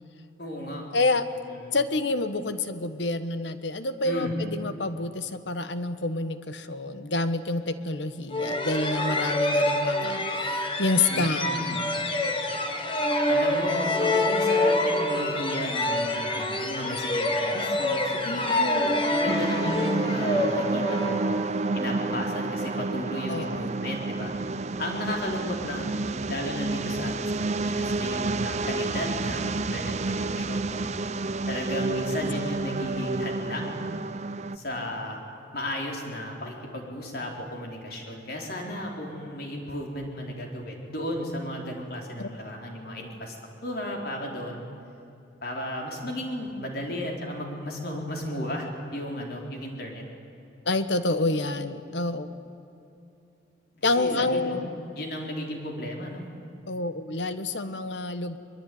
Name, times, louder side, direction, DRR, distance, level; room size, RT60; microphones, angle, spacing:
voice 1, 0.4-0.8 1.5-1.8 4.0-4.3 11.1-11.8 13.3-24.3 24.8-30.9 31.5-33.9 34.5-35.2 35.5-43.4 43.6-44.6 45.4-50.0 53.8-54.6 55.0-56.2, equal, 55° left, 1 dB, 4.4 m, -34 dB
voice 2, 0.9-1.3 1.7-11.6 23.3-23.7 42.2-42.3 50.6-52.3 53.8-54.7 56.7-58.4, left 2 dB, 75° left, 11 dB, 1.3 m, -28 dB
sound 1, 8.3-21.8, left 1 dB, 30° left, 1.8 m, -26 dB
sound 2, 19.3-34.6, right 3 dB, 35° right, 0.7 m, -29 dB
22.5 x 22.5 x 9.5 m, 2.7 s
head